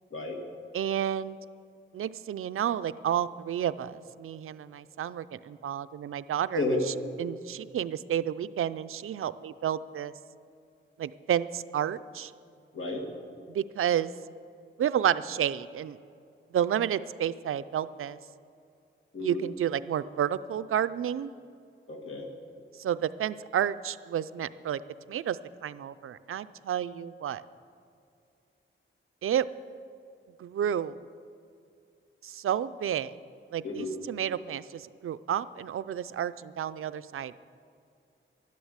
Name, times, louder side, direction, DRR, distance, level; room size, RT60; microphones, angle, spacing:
voice 1, 0.7-1.4 1.9-6.6 7.2-10.1 11.0-12.3 13.5-14.1 14.8-16.0 16.5-18.2 19.2-21.3 22.8-24.8 25.1-27.4 29.2-29.4 30.4-31.0 32.2-33.1 33.5-37.3, right 10 dB, 85° right, 14 dB, 0.5 m, -31 dB
voice 2, 6.5-6.9 12.7-13.1 19.1-19.4 21.9-22.3 33.6-33.9, left 2 dB, 75° left, 2 dB, 2.1 m, -31 dB
12.5 x 11.5 x 8.0 m, 2.5 s
wide cardioid pair, 150°, 21 cm